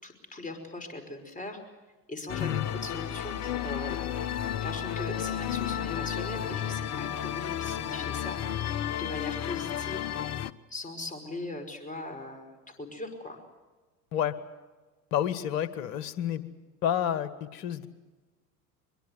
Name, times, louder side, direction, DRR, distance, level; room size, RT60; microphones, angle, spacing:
voice 1, 0.0-1.6 2.1-4.0 4.6-8.4 9.0-10.1 10.7-13.4, left 2 dB, 15° left, 6 dB, 5.3 m, -39 dB
sound 1, 2.3-10.5, left 10 dB, 35° left, 0.9 m, -32 dB
Wind instrument woodwind instrument, 2.3-7.7, right 4 dB, 70° right, 4.8 m, -51 dB
voice 2, 15.1-16.4 16.8-17.9, left 10 dB, 55° left, 12 dB, 1.8 m, -29 dB
23.0 x 22.5 x 8.0 m, 1.2 s
figure-of-eight pair, 75°, 48 cm